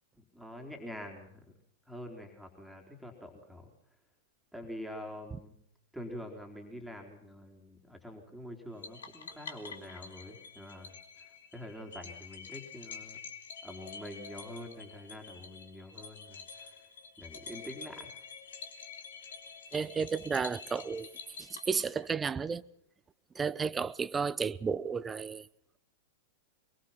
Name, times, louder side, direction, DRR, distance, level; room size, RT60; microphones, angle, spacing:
voice 1, 0.3-1.4 1.9-3.7 4.5-5.5 5.9-10.9 11.5-13.2 13.6-16.7 17.2-18.1, left 1 dB, ahead, 4.2 m, -45 dB
sound 1, 8.8-22.3, left 6 dB, 70° left, 2.9 m, -48 dB
voice 2, 19.7-21.1 21.4-22.6 23.3-25.5, right 5 dB, 15° right, 0.9 m, -32 dB
23.5 x 22.5 x 5.9 m
figure-of-eight pair, 100°, 0 cm